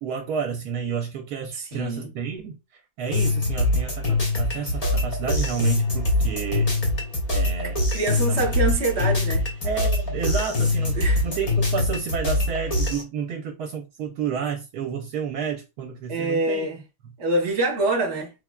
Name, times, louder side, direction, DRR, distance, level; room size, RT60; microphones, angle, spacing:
voice 1, 0.0-2.6 3.0-6.7 7.3-7.8 8.1-8.5 9.6-16.7, right 6 dB, 75° right, 1.0 m, -30 dB
voice 2, 1.5-2.1 7.9-9.4 10.9-11.2 16.1-16.8 17.2-18.3, right 2 dB, 45° right, 1.1 m, -25 dB
sound 1, 3.1-13.0, left 2 dB, 40° left, 0.5 m, -23 dB
4.4 x 2.2 x 2.2 m
omnidirectional pair, 1.7 m